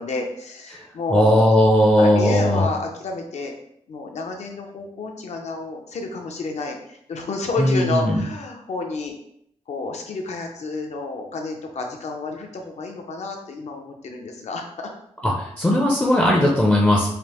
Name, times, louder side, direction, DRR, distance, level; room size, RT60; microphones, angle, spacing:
voice 1, 0.0-1.4 2.0-3.5 3.9-9.1 9.7-14.9, left 3 dB, 70° left, 2 dB, 0.6 m, -30 dB
voice 2, 1.1-2.7 7.6-8.2 15.2-17.1, left 1 dB, 15° left, -2 dB, 0.4 m, -17 dB
5.0 x 2.0 x 2.9 m, 0.72 s
wide cardioid pair, 170°, 12 cm